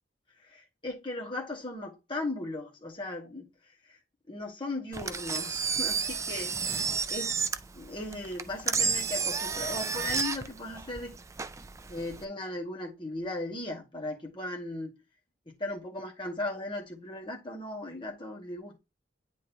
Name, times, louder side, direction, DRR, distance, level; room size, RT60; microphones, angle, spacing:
voice 1, 0.5-3.5 4.3-6.8 7.1-7.3 7.7-11.2 11.9-14.9 15.5-18.8, left 2 dB, 25° left, 1.8 m, -37 dB
Engine, 4.9-12.2, right 5 dB, 15° right, 0.3 m, -31 dB
9.1 x 3.7 x 3.0 m
head